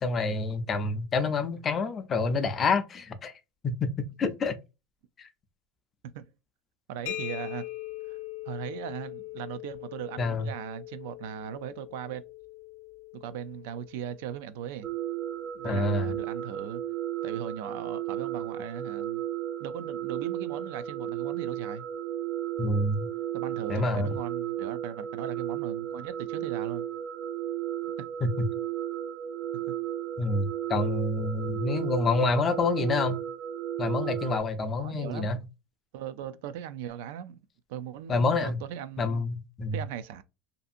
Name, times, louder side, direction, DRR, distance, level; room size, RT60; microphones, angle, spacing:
voice 1, 0.0-3.3 3.6-4.6 5.2-5.3 10.2-10.5 15.6-16.1 22.6-23.1 23.7-24.1 28.2-28.5 30.2-33.2 33.8-35.4 38.1-38.6 39.0-39.8, left 3 dB, 25° left, 0.4 m, -27 dB
voice 2, 6.9-7.6 8.1-8.2 8.5-12.2 13.1-14.9 15.5-16.8 17.2-19.2 19.6-21.8 23.3-26.9 29.5-29.6 34.8-35.3 35.9-37.4 37.7-39.2 39.7-40.2, right 9 dB, 75° right, 0.4 m, -38 dB
sound 1, 7.1-14.6, left 17 dB, 80° left, 0.5 m, -41 dB
sound 2, 14.8-34.4, right 11 dB, 35° right, 0.6 m, -34 dB
2.6 x 2.5 x 2.4 m
supercardioid pair, 150°, 0 cm